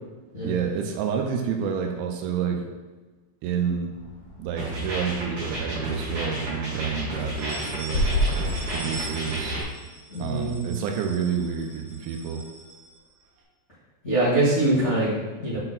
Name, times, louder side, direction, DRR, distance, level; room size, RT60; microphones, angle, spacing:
voice 1, 0.4-2.7 3.4-3.9 4.4-8.2 8.7-9.6 10.2-12.4, right 7 dB, 85° right, 3 dB, 2.8 m, -29 dB
sound 1, 3.9-9.0, equal, 55° left, 2.6 m, -31 dB
sound 2, 4.6-9.6, right 1 dB, 50° right, 3.2 m, -31 dB
sound 3, 4.7-5.6 6.0-6.1 6.5-6.6 7.2-13.4, right 3 dB, 65° right, 2.7 m, -43 dB
voice 2, 10.1-10.9 14.0-15.6, right 1 dB, 80° left, -12 dB, 0.6 m, -24 dB
7.8 x 4.2 x 4.1 m, 1.2 s
omnidirectional pair, 5.7 m